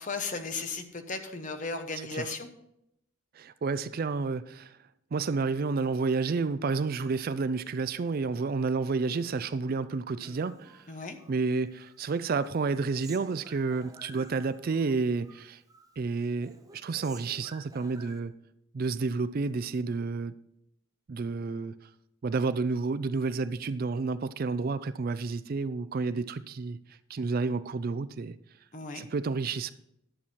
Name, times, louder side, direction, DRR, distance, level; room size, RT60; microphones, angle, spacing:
voice 1, 0.0-2.5 10.9-11.2 28.7-29.0, left 4 dB, 40° left, 0.9 m, -35 dB
voice 2, 3.4-4.8 5.1-10.8 11.3-15.6 16.0-18.3 18.7-20.3 21.1-21.7 22.2-26.8 27.1-28.4 28.9-29.7, right 4 dB, 45° right, 0.4 m, -30 dB
Human voice, 10.2-11.4 11.7-14.9 15.2-15.9 16.2-18.2, right 3 dB, 15° right, 0.8 m, -52 dB
11.0 x 7.1 x 4.5 m
head